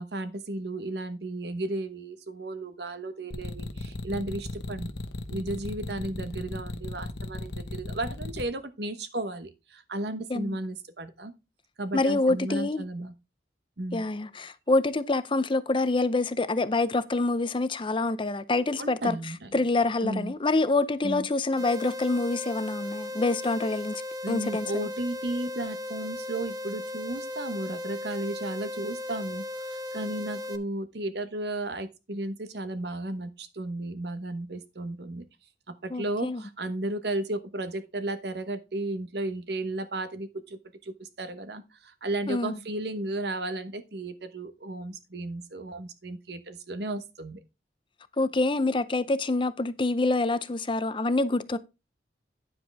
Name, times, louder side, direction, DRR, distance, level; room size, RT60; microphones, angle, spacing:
voice 1, 0.0-4.9 5.3-11.3 11.8-13.1 13.8-14.0 18.8-19.5 20.0-20.3 21.0-21.3 24.2-35.2 35.7-47.4, right 1 dB, 65° right, 1.1 m, -34 dB
sound 1, 3.3-8.4, left 2 dB, 70° left, 1.1 m, -35 dB
voice 2, 11.9-12.8 13.9-19.2 19.5-24.0 24.3-24.7 35.9-36.4 42.3-42.6 48.2-51.6, left 2 dB, 30° left, 0.6 m, -26 dB
sound 2, 21.6-30.6, left 1 dB, 20° right, 0.7 m, -36 dB
9.8 x 7.7 x 3.4 m
head